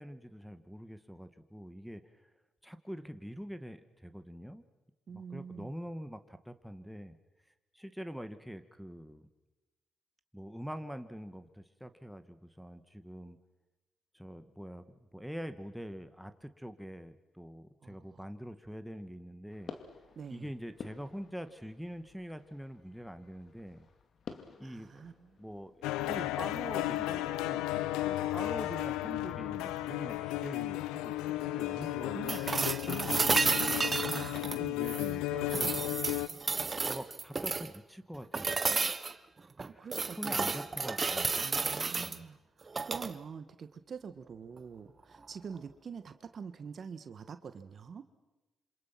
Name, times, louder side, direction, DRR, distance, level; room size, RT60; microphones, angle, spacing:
voice 1, 0.0-2.0 2.6-4.6 5.1-7.2 7.7-9.3 10.3-13.4 14.1-14.8 15.1-19.7 20.3-23.9 24.6-25.0 25.4-32.6 33.3-33.9 34.7-35.7 36.8-39.0 39.7-39.9 40.2-42.3, equal, ahead, 9 dB, 2.1 m, -45 dB
voice 2, 5.1-5.7 17.8-18.2 20.1-20.5 24.6-25.4 31.6-34.8 39.8-40.5 41.4-48.0, right 6 dB, 55° right, 10 dB, 1.7 m, -46 dB
sound 1, 19.5-28.4, left 6 dB, 65° left, 2.6 m, -53 dB
sound 2, 25.8-36.3, left 16 dB, 90° left, 0.8 m, -34 dB
sound 3, 32.3-35.1 35.5-37.8 38.3-39.1 39.6-42.2 42.7-43.1 45.1-45.2, right 4 dB, 40° right, 1.3 m, -32 dB
27.5 x 26.5 x 6.1 m, 1.1 s
supercardioid pair, 55°, 0 cm